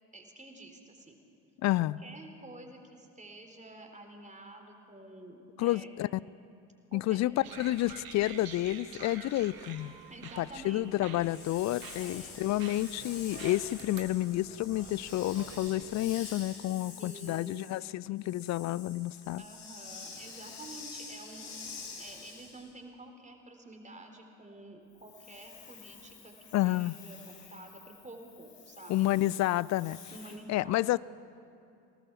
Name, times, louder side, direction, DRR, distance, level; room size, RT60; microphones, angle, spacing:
voice 1, 0.1-1.2 2.0-5.9 6.9-7.3 10.1-10.9 12.0-12.5 16.9-17.8 19.4-28.9 30.1-31.0, right 2 dB, 15° right, 3 dB, 4.0 m, -50 dB
voice 2, 1.6-2.0 5.6-6.1 6.9-9.9 10.4-19.4 26.5-26.9 28.9-30.0 30.5-31.0, left 15 dB, 35° left, 22 dB, 0.4 m, -30 dB
sound 1, 7.4-16.0, right 6 dB, 45° right, 2.4 m, -48 dB
Hiss, 11.2-22.7 24.9-30.3, left 5 dB, 70° left, 4.1 m, -48 dB
23.0 x 19.0 x 7.4 m, 2.6 s
figure-of-eight pair, 55°, 49 cm